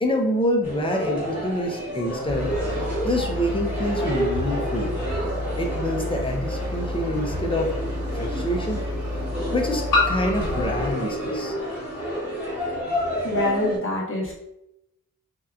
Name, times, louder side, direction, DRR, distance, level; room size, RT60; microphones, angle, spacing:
voice 1, 0.0-2.5 3.0-4.9 5.6-7.7 8.1-8.8 9.5-11.5, equal, 15° left, 1 dB, 0.4 m, -26 dB
sound 1, 0.6-13.8, equal, 5° right, 1.2 m, -30 dB
Engine starting, 2.2-10.9, left 1 dB, 60° right, 0.9 m, -31 dB
sound 2, 6.0-6.1 7.7-7.8 9.9-12.4, left 3 dB, 85° left, 0.9 m, -28 dB
voice 2, 13.2-14.3, left 2 dB, 40° left, -2 dB, 0.7 m, -25 dB
2.7 x 2.2 x 2.3 m, 0.85 s
wide cardioid pair, 90°, 33 cm